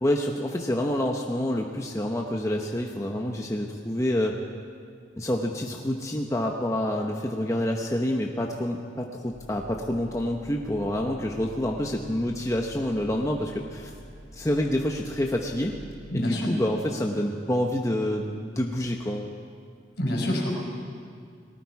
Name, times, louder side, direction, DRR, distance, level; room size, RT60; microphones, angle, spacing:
voice 1, 0.0-4.4 5.2-13.9 14.3-15.7 16.1-19.3, left 1 dB, 15° left, 1 dB, 0.9 m, -27 dB
sound 1, 9.3-15.8, equal, 45° right, 6.4 m, -47 dB
voice 2, 16.1-16.5 20.0-20.5, left 1 dB, 65° left, 0 dB, 4.8 m, -26 dB
29.5 x 19.5 x 4.8 m, 2.2 s
head